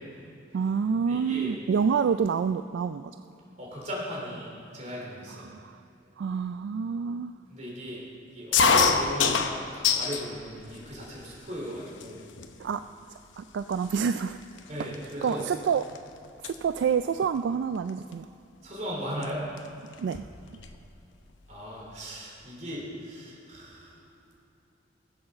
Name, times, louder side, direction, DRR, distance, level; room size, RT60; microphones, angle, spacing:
voice 1, 0.5-3.1 5.4-5.8 6.2-7.3 12.6-12.8 13.4-14.4 14.8-14.9 15.2-15.9 16.4-18.3 20.0-20.2, right 6 dB, 70° right, 10 dB, 0.3 m, -27 dB
voice 2, 1.1-1.6 3.6-5.5 7.5-8.0 8.3-12.2 14.7-15.4 18.6-19.4 21.5-24.0, equal, 40° right, -3 dB, 3.5 m, -37 dB
sound 1, 8.5-10.3 10.7-11.3 12.0-12.1 12.4-12.7 13.4-13.5 13.7-16.0 16.2-16.6 17.9-18.1 19.2-19.3 19.6-19.7 19.9-20.8, left 5 dB, 85° left, 0.8 m, -26 dB
15.0 x 8.0 x 6.8 m, 2.8 s
head